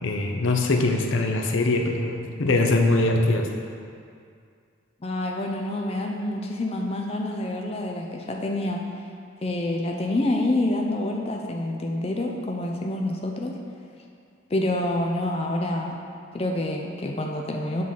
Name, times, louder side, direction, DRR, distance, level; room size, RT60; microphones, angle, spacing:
voice 1, 0.0-3.5, left 2 dB, 80° left, 3 dB, 0.7 m, -22 dB
voice 2, 5.0-8.8 9.4-13.5 14.5-16.0 16.3-17.8, left 1 dB, 30° left, 1 dB, 0.5 m, -27 dB
7.4 x 3.9 x 5.6 m, 2.3 s
head